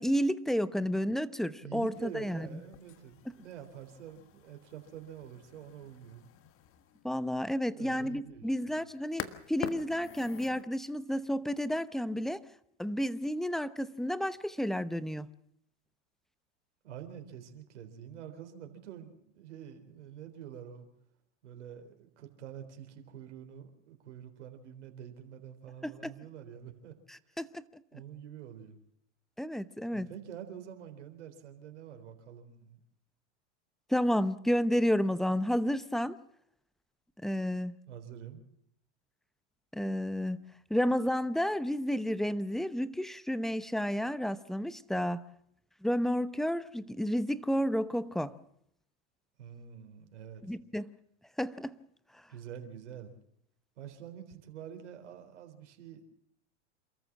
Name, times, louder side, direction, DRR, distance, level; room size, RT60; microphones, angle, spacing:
voice 1, 0.0-2.6 7.0-9.2 9.5-12.4 12.8-15.3 25.8-26.1 27.1-27.5 29.4-30.1 33.9-36.2 37.2-37.7 39.7-40.4 40.7-45.2 45.8-48.4 50.4-50.9 51.4-51.7, equal, ahead, 16 dB, 0.8 m, -31 dB
voice 2, 1.6-6.3 7.8-8.4 16.8-20.8 21.4-26.9 27.9-28.8 29.9-32.8 37.9-38.4 49.4-50.6 52.3-53.1 53.8-56.0, right 9 dB, 85° right, 6 dB, 4.0 m, -47 dB
sound 1, 1.9-10.6, left 10 dB, 40° left, 1.6 m, -47 dB
27.5 x 14.0 x 7.4 m, 0.73 s
hypercardioid pair, 110°, 35 cm